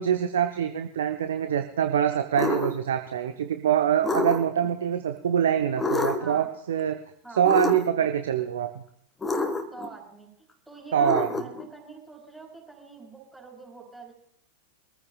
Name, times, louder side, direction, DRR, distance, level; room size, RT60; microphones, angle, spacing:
voice 1, 0.0-7.0 7.3-8.8 10.9-11.3, right 9 dB, 65° right, 7 dB, 0.8 m, -25 dB
sound 1, 2.4-2.8 4.0-4.7 5.8-6.4 7.5-8.1 9.2-9.9 11.0-11.7, left 3 dB, 10° left, 1.5 m, -28 dB
voice 2, 6.2-6.5 7.2-7.5 9.7-14.1, right 3 dB, 5° right, -3 dB, 4.5 m, -45 dB
24.0 x 14.5 x 2.4 m, 0.70 s
figure-of-eight pair, 90°, 0 cm